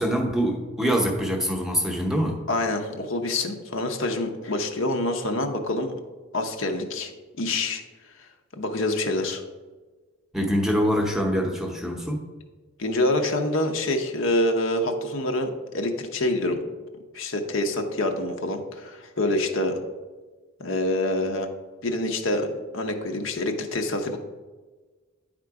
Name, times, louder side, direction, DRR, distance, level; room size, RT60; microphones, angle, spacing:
voice 1, 0.0-2.4 10.3-12.2, equal, ahead, 1 dB, 0.7 m, -24 dB
voice 2, 2.5-5.9 6.3-7.1 7.4-7.8 8.5-9.4 12.8-16.6 17.1-19.8 20.6-21.5 21.8-22.5 22.7-24.2, left 1 dB, 65° left, 5 dB, 0.7 m, -26 dB
9.8 x 3.7 x 4.7 m, 1.3 s
head